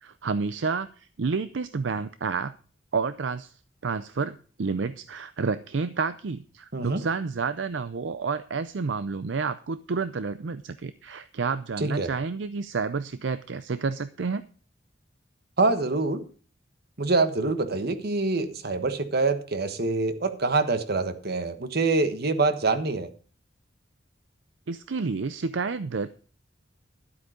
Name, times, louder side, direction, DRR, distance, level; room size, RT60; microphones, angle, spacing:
voice 1, 0.0-2.5 2.9-3.5 3.8-14.4 24.7-26.1, right 4 dB, 70° right, 13 dB, 0.5 m, -30 dB
voice 2, 11.8-12.1 15.6-16.2 17.0-23.1, right 3 dB, 55° right, 10 dB, 1.3 m, -25 dB
12.0 x 8.4 x 5.1 m, 0.41 s
head